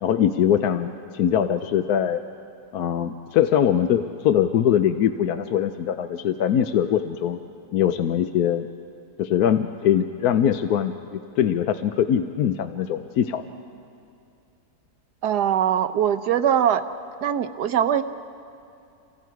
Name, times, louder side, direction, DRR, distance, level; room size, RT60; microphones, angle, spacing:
voice 1, 0.0-2.2 2.7-7.4 7.7-8.7 9.2-13.4, left 9 dB, 70° left, 8 dB, 1.1 m, -22 dB
voice 2, 15.2-16.8 17.2-18.0, right 9 dB, 75° right, 10 dB, 1.4 m, -21 dB
29.0 x 26.0 x 4.7 m, 2.6 s
omnidirectional pair, 1.8 m